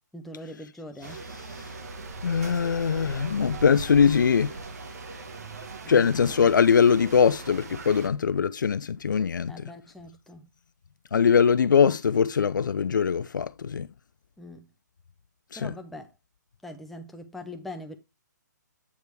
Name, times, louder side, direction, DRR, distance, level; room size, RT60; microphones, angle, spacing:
voice 1, 0.1-1.2 5.8-6.1 9.5-10.5 14.4-14.7 15.5-16.1 16.6-18.0, left 1 dB, ahead, 0.6 m, -42 dB
sound 1, 1.0-8.1, right 3 dB, 55° right, 1.3 m, -39 dB
voice 2, 2.2-4.5 5.9-9.7 11.1-13.9 15.5-15.7, left 6 dB, 80° left, 0.6 m, -22 dB
8.5 x 3.3 x 4.6 m
hypercardioid pair, 165°, 10 cm